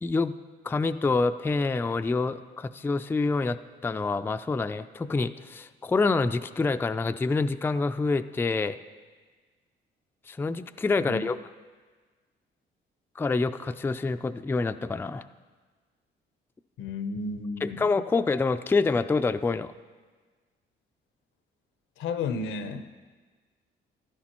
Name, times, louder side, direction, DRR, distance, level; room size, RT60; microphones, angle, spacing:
voice 1, 0.0-0.3 0.6-3.6 3.8-8.8 10.3-11.4 13.2-15.2 17.6-19.7, left 3 dB, 10° left, 10 dB, 0.3 m, -27 dB
voice 2, 16.8-17.8 22.0-22.9, left 4 dB, 85° left, 9 dB, 0.8 m, -32 dB
14.5 x 11.5 x 3.0 m, 1.4 s
cardioid pair, 90°, 20 cm